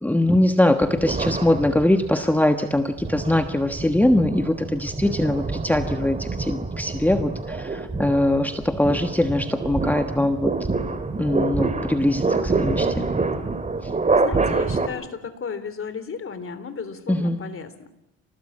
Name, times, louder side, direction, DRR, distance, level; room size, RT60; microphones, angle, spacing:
voice 1, 0.0-10.5 11.2-13.0 13.8-13.9 17.1-17.4, left 1 dB, 5° left, 7 dB, 1.4 m, -22 dB
sound 1, 0.8-2.2 2.8-14.9, right 3 dB, 25° right, 2.5 m, -26 dB
voice 2, 5.0-5.4 14.0-17.9, left 5 dB, 45° left, 12 dB, 3.4 m, -35 dB
29.0 x 19.5 x 8.7 m, 0.90 s
cardioid pair, 90°, 30 cm